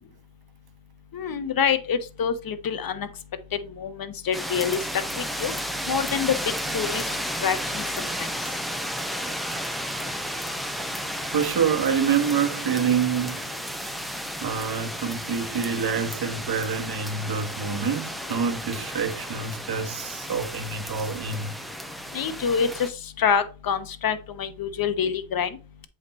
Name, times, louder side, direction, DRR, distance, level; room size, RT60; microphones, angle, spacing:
voice 1, 1.1-3.1 3.8-4.8 5.2-5.5 5.9-6.4 6.7-7.0 7.4-8.3 22.1-22.9 23.2-25.5, left 7 dB, 50° left, 1.1 m, -26 dB
sound 1, 4.3-22.9, equal, ahead, 0.9 m, -33 dB
voice 2, 11.1-13.4 14.4-21.6, right 6 dB, 55° right, 1.3 m, -27 dB
7.8 x 3.5 x 4.2 m
cardioid pair, 75°, 44 cm